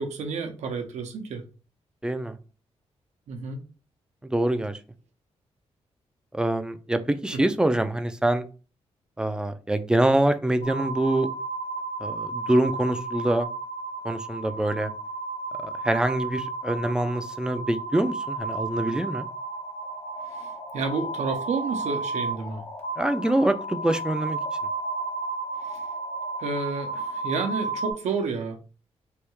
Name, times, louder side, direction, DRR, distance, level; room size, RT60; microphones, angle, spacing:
voice 1, 0.0-1.4 3.3-3.6 7.3-7.4 20.3-22.6 25.7-25.8 26.4-28.6, right 4 dB, 80° right, 4 dB, 0.7 m, -30 dB
voice 2, 2.0-2.4 4.2-4.8 6.3-8.5 9.2-11.3 12.0-13.5 14.0-14.9 15.6-19.3 23.0-24.4, right 1 dB, 5° right, 10 dB, 0.3 m, -25 dB
sound 1, 10.6-27.9, right 3 dB, 85° left, 0.9 m, -33 dB
3.3 x 2.3 x 3.0 m, 0.36 s
cardioid pair, 105°, 12 cm